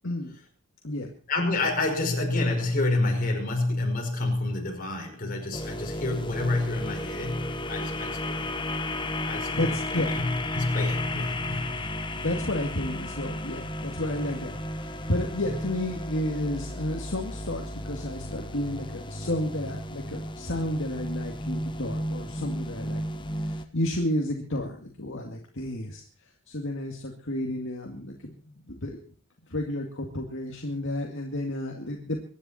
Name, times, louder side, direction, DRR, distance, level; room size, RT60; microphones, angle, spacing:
voice 1, 0.0-0.4 0.8-1.1 9.6-10.1 12.1-23.0 23.4-26.0 26.5-29.0 29.5-32.2, left 1 dB, 60° left, 1 dB, 2.2 m, -31 dB
voice 2, 1.3-8.5 9.3-11.9 12.1-12.3, left 2 dB, 40° left, 1 dB, 5.3 m, -28 dB
sound 1, 5.5-23.7, left 1 dB, 20° left, 1.0 m, -34 dB
24.0 x 10.5 x 4.3 m, 0.41 s
head